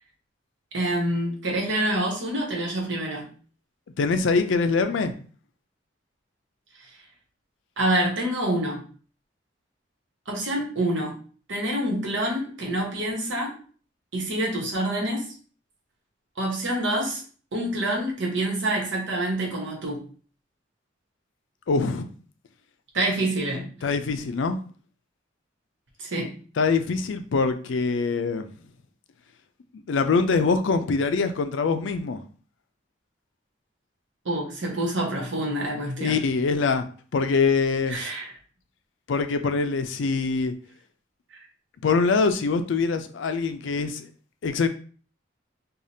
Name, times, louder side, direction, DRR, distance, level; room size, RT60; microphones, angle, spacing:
voice 1, 0.7-3.3 7.8-8.8 10.3-11.2 11.5-13.6 14.1-15.3 16.4-17.2 17.5-20.0 22.9-23.7 26.0-26.3 34.2-36.2 37.9-38.3, right 1 dB, 80° right, 1.2 m, -27 dB
voice 2, 4.0-5.1 21.7-22.1 23.8-24.6 26.6-28.5 29.9-32.2 36.0-36.8 37.1-38.0 39.1-40.5 41.8-44.1 44.4-44.7, left 4 dB, 80° left, 0.4 m, -23 dB
4.9 x 2.4 x 2.7 m
head